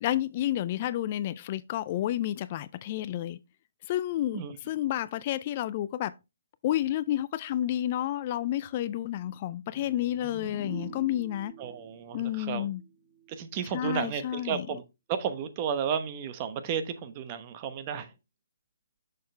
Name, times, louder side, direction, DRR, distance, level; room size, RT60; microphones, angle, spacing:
voice 1, 0.0-3.4 3.9-4.4 4.7-6.1 6.6-11.5 12.1-12.8 13.7-14.7, left 12 dB, 35° left, 0.3 m, -30 dB
sound 1, 9.7-13.4, right 3 dB, 15° right, 2.0 m, -46 dB
voice 2, 11.6-12.7 13.3-14.8 15.1-18.1, right 7 dB, 30° right, 0.9 m, -33 dB
6.5 x 6.4 x 3.3 m
hypercardioid pair, 150°, 0 cm